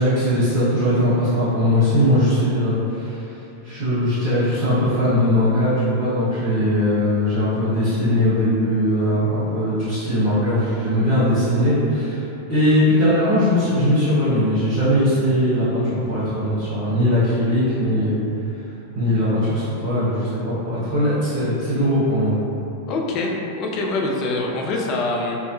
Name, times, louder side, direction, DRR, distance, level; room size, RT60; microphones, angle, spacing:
voice 1, 0.0-18.2 18.5-18.6 18.9-22.3, equal, 45° right, -14 dB, 0.9 m, -20 dB
voice 2, 22.9-25.4, left 2 dB, 35° left, -1 dB, 0.3 m, -24 dB
2.1 x 2.1 x 2.9 m, 2.8 s
figure-of-eight pair, 90°, 0 cm